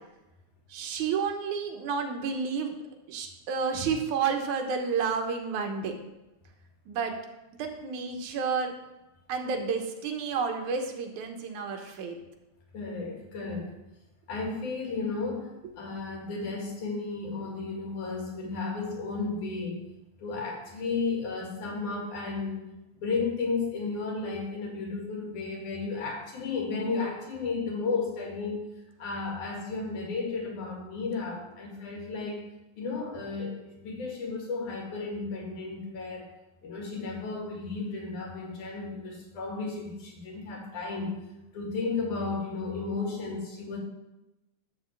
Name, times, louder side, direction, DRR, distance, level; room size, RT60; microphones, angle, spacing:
voice 1, 0.7-2.7 3.1-6.0 6.9-7.1 7.6-8.7 9.3-12.2, right 5 dB, 80° right, 3 dB, 2.4 m, -30 dB
voice 2, 12.7-13.7 14.3-19.8 20.2-22.6 22.9-28.7 29.0-32.4 32.8-33.6 33.8-36.3 36.6-41.2 41.5-43.8, left 4 dB, 75° left, -1 dB, 3.6 m, -33 dB
11.5 x 3.9 x 7.2 m, 0.98 s
omnidirectional pair, 3.5 m